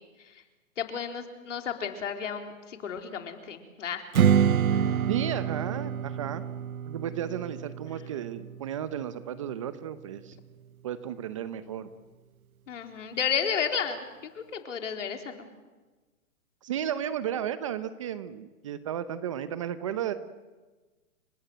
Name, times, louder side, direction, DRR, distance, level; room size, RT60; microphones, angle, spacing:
voice 1, 0.8-4.0 4.7-5.0 12.7-14.0 14.4-15.4, left 7 dB, 60° left, 5 dB, 4.0 m, -32 dB
Strum, 4.1-9.4, right 8 dB, 85° right, 1.0 m, -27 dB
voice 2, 5.1-6.4 6.9-10.4 10.8-11.9 16.6-20.1, right 10 dB, 25° right, 13 dB, 0.8 m, -33 dB
29.5 x 17.5 x 9.0 m, 1.2 s
hypercardioid pair, 160°, 41 cm